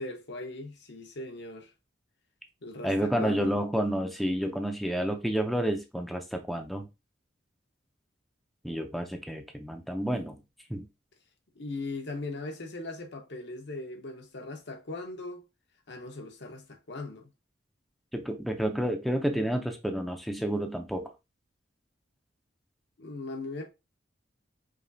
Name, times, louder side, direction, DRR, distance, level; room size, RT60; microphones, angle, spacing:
voice 1, 0.0-1.7 2.6-3.6 11.5-15.4 15.9-17.3 23.0-23.7, left 2 dB, 65° left, 1.0 m, -39 dB
voice 2, 2.8-6.9 8.6-10.3 10.7-10.9 18.1-21.1, equal, ahead, 0.6 m, -30 dB
5.0 x 3.0 x 2.7 m
head